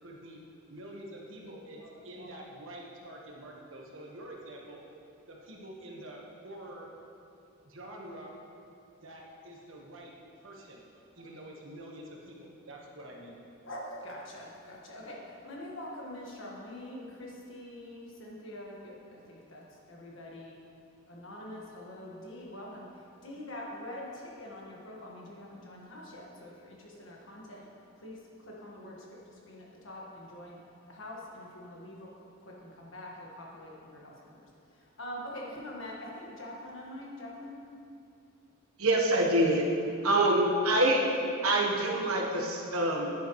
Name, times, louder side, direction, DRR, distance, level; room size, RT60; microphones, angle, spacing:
voice 1, 0.0-0.4 0.7-4.8 5.3-6.9 7.6-8.3 9.0-10.1 10.4-10.8 11.1-13.4, right 1 dB, 65° right, -1 dB, 1.4 m, -46 dB
voice 2, 13.6-20.5 21.1-27.7 27.9-30.6 30.9-37.6, left 1 dB, 60° left, -3 dB, 1.6 m, -45 dB
voice 3, 38.8-39.6 40.0-41.1 41.4-43.1, right 1 dB, 80° right, -1 dB, 1.2 m, -25 dB
10.0 x 9.6 x 3.2 m, 2.6 s
head